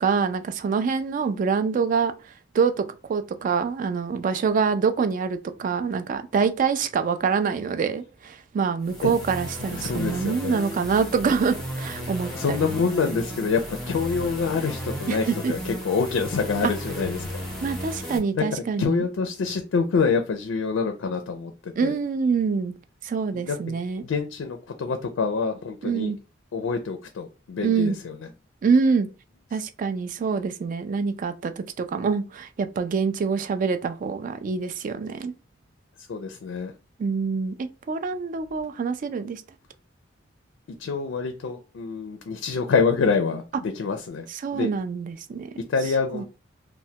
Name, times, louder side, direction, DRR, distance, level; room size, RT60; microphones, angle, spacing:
voice 1, 0.0-2.1 2.5-2.8 3.1-12.9 15.1-15.5 16.6-16.7 17.6-19.0 21.8-22.7 23.0-24.0 25.8-26.2 27.6-28.0 28.6-29.1 29.5-35.3 37.0-39.4 44.3-45.5 45.8-46.2, right 5 dB, 45° right, 0.3 m, -25 dB
sound 1, 8.8-18.2, equal, 5° left, 0.6 m, -34 dB
voice 2, 9.7-10.6 12.3-17.4 18.3-18.4 18.8-21.5 21.8-21.9 23.4-23.6 24.0-26.1 26.5-27.9 36.1-36.7 40.8-44.2 44.5-44.7 45.7-46.2, left 5 dB, 85° left, 0.4 m, -26 dB
3.1 x 2.1 x 2.7 m
head